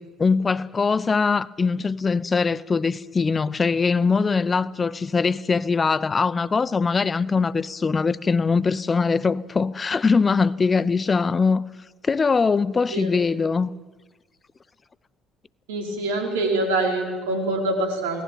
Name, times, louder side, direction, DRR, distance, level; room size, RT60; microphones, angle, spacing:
voice 1, 0.0-11.6 12.0-13.7, left 4 dB, 30° left, 0.9 m, -22 dB
voice 2, 15.7-18.2, right 2 dB, 85° right, 4.9 m, -25 dB
28.5 x 19.0 x 9.4 m
hypercardioid pair, 55°, 0 cm